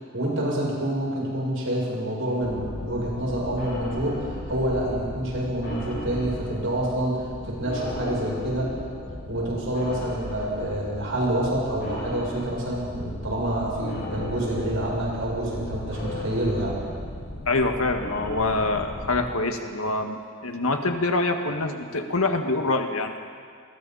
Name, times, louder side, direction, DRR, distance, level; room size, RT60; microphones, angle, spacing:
voice 1, 0.1-8.7 9.3-16.7, right 1 dB, 65° right, -4 dB, 7.8 m, -27 dB
sound 1, 2.4-19.2, left 1 dB, 55° left, 6.3 m, -36 dB
voice 2, 17.5-23.2, left 2 dB, 80° left, 4 dB, 1.8 m, -25 dB
29.0 x 22.0 x 4.2 m, 2.1 s
head